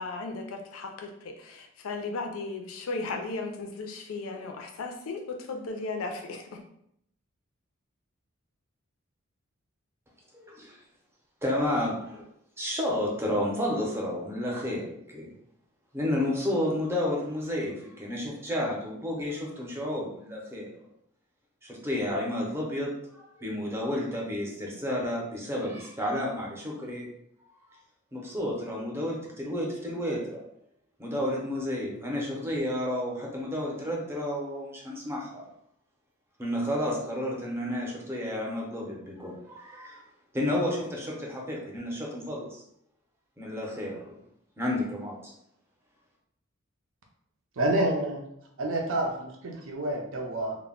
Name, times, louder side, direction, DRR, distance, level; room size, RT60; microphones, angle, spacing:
voice 1, 0.0-6.6, left 3 dB, 80° left, 4 dB, 0.4 m, -36 dB
voice 2, 10.3-10.8 11.4-12.2 12.6-15.3 15.9-20.7 21.6-27.1 28.1-30.4 31.0-35.4 36.4-40.0 40.3-42.6 43.4-44.2 44.6-45.3, left 1 dB, 10° right, -2 dB, 0.6 m, -31 dB
voice 3, 47.6-48.2 48.6-50.6, right 1 dB, 70° right, 1 dB, 0.5 m, -28 dB
2.2 x 2.0 x 3.6 m, 0.73 s
head